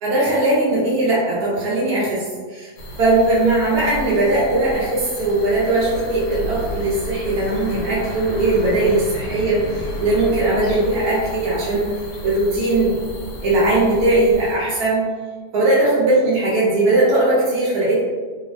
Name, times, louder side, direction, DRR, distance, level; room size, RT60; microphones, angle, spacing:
voice 1, 0.0-2.7 3.0-11.9 12.2-13.0 13.4-15.0 15.5-18.0, right 2 dB, 85° right, -7 dB, 1.2 m, -19 dB
sound 1, 2.8-14.6, equal, 85° left, 1.1 m, -32 dB
3.2 x 2.0 x 2.5 m, 1.5 s
omnidirectional pair, 1.6 m